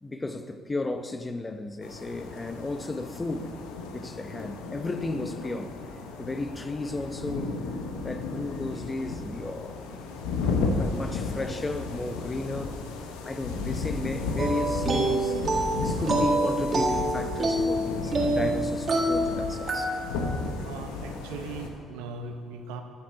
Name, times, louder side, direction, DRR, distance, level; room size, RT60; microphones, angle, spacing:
voice 1, 0.0-3.6 3.9-5.8 6.2-7.5 8.0-9.9 10.8-12.8 13.2-15.4 15.8-20.0, left 2 dB, 25° left, 0.8 m, -34 dB
sound 1, 1.8-21.7, left 3 dB, 90° left, 1.0 m, -34 dB
sound 2, 14.4-20.2, right 1 dB, 40° right, 1.8 m, -26 dB
voice 2, 20.5-22.8, right 4 dB, 85° right, 0.9 m, -39 dB
13.0 x 6.6 x 5.6 m
supercardioid pair, 70°, 0 cm